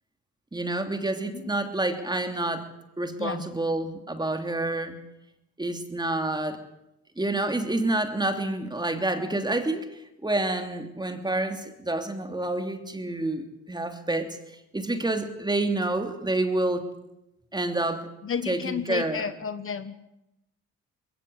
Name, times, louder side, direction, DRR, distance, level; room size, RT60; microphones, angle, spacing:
voice 1, 0.5-2.7 3.0-5.0 5.6-6.6 7.2-14.4 14.7-16.8 17.5-18.1 18.5-19.2, right 2 dB, 15° right, 6 dB, 2.9 m, -28 dB
voice 2, 18.2-19.9, left 7 dB, 45° left, 12 dB, 1.3 m, -32 dB
21.0 x 17.5 x 8.2 m, 0.87 s
cardioid pair, 90°, 30 cm